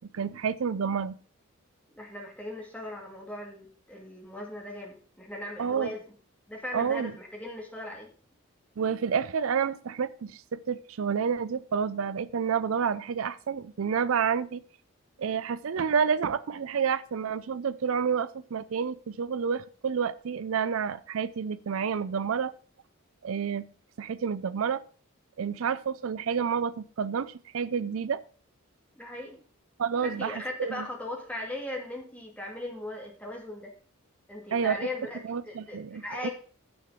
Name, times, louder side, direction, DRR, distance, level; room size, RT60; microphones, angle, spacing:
voice 1, 0.1-1.1 5.6-5.9 6.7-7.1 8.8-14.6 15.2-22.5 23.2-23.7 24.0-24.8 25.4-28.2 29.8-30.8 34.5-34.8 35.2-36.3, right 6 dB, 75° right, 17 dB, 0.4 m, -29 dB
voice 2, 2.0-6.0 6.5-8.1 29.0-29.4 30.0-33.7 34.3-35.2 35.5-36.3, left 1 dB, 5° left, 0 dB, 2.6 m, -38 dB
10.0 x 6.7 x 5.8 m, 0.43 s
head